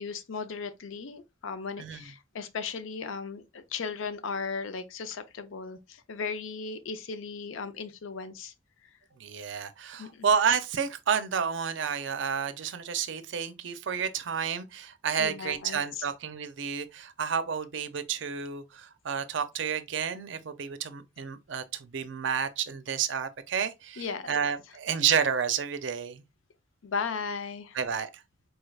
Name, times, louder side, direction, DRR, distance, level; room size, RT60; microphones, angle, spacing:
voice 1, 0.0-8.5 8.8-8.9 10.0-10.3 15.2-16.1 24.0-24.4 26.8-27.8, left 5 dB, 80° left, 0.5 m, -36 dB
voice 2, 1.8-2.1 9.2-26.2 27.7-28.2, right 7 dB, 65° right, 0.5 m, -30 dB
4.5 x 3.2 x 2.3 m
head